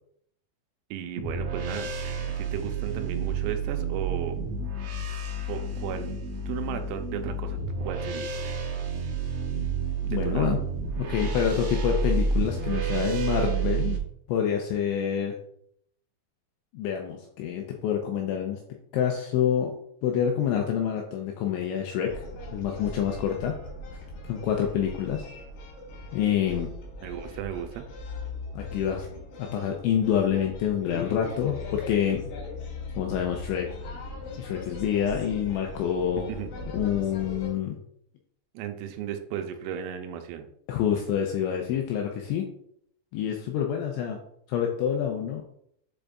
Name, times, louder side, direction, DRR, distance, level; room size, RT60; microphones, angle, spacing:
voice 1, 0.9-1.9 2.4-4.4 5.5-6.2 6.5-8.3 10.1-10.5 27.0-27.9 36.3-36.5 38.5-40.5, right 9 dB, 90° right, 6 dB, 3.4 m, -35 dB
sound 1, 1.2-14.0, right 4 dB, 70° right, 2.8 m, -30 dB
voice 2, 10.0-10.6 11.0-14.0 14.3-15.4 16.7-18.6 18.9-19.7 20.0-22.2 22.5-23.5 24.2-25.2 26.1-26.7 28.5-29.1 29.4-32.3 32.9-33.7 34.4-36.3 36.7-37.8 40.7-42.5 43.1-44.2 44.5-45.4, left 9 dB, 85° left, 2 dB, 2.7 m, -27 dB
sound 2, 22.1-37.5, left 2 dB, 65° left, 3.8 m, -40 dB
7.7 x 5.1 x 2.4 m, 0.70 s
omnidirectional pair, 6.0 m